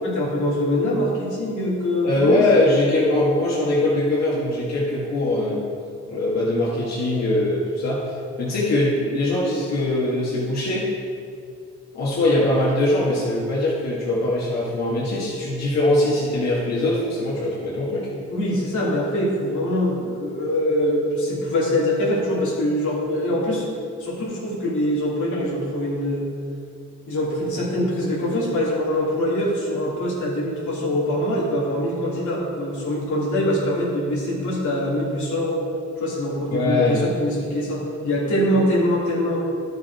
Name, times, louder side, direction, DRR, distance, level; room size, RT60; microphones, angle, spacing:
voice 1, 0.0-2.4 18.3-23.7 24.0-26.3 27.1-35.6 36.0-39.4, left 1 dB, 80° left, -5 dB, 2.7 m, -23 dB
voice 2, 2.0-5.6 6.1-8.1 8.4-10.9 11.9-18.1 36.5-37.0, left 1 dB, 60° left, -7 dB, 2.2 m, -21 dB
11.5 x 6.3 x 4.6 m, 2.4 s
cardioid pair, 105°, 30 cm